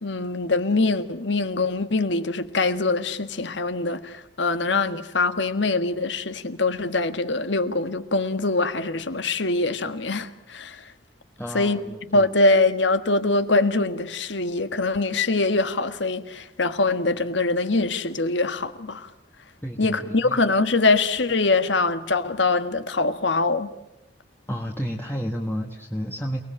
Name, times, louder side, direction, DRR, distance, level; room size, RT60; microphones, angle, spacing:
voice 1, 0.0-10.9 11.5-11.8 12.1-19.1 19.8-23.7, left 3 dB, 75° left, 1.6 m, -23 dB
voice 2, 11.4-12.3 19.6-20.4 24.5-26.4, equal, 10° left, 1.4 m, -31 dB
29.0 x 19.5 x 8.8 m
head